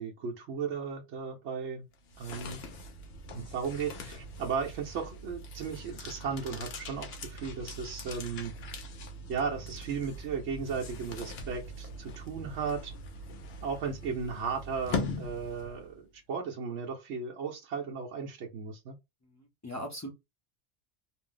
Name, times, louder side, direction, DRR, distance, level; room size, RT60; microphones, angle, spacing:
voice 1, 0.0-1.9 2.2-2.6 3.3-8.5 9.3-12.9 13.6-19.0, right 5 dB, 75° right, 1.0 m, -35 dB
sound 1, 1.9-16.0, left 2 dB, 60° left, 0.8 m, -41 dB
voice 2, 19.2-20.1, equal, 25° left, 0.4 m, -40 dB
2.6 x 2.0 x 3.7 m
omnidirectional pair, 1.2 m